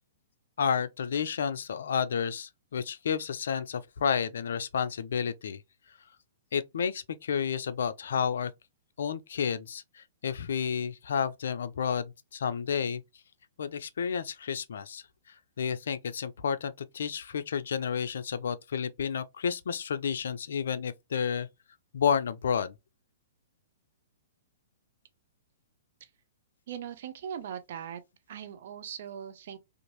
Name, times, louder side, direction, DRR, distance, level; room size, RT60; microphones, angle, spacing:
voice 1, 0.6-5.6 6.5-8.5 9.0-13.0 13.6-15.0 15.6-21.5 21.9-22.7, left 7 dB, 65° left, 0.3 m, -31 dB
voice 2, 26.7-28.0 28.3-29.6, right 9 dB, 55° right, 0.5 m, -40 dB
2.6 x 2.4 x 2.9 m
figure-of-eight pair, 115°, 0 cm